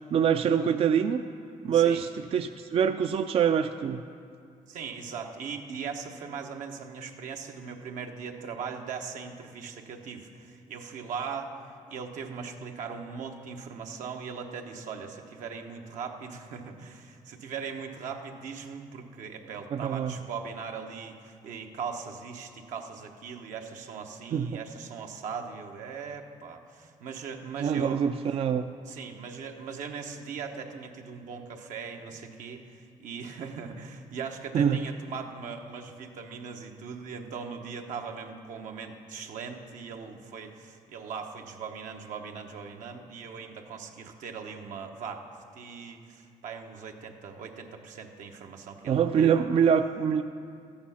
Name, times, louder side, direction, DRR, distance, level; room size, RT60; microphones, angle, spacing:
voice 1, 0.1-1.2 1.6-4.0 19.7-20.2 24.3-24.6 27.6-28.7 34.5-34.8 48.9-50.2, right 8 dB, 50° right, 8 dB, 0.4 m, -24 dB
voice 2, 1.7-2.0 4.7-11.5 11.9-28.0 28.9-49.4, right 6 dB, 85° right, 3 dB, 1.0 m, -39 dB
13.5 x 8.7 x 5.7 m, 2.3 s
cardioid pair, 95°, 13 cm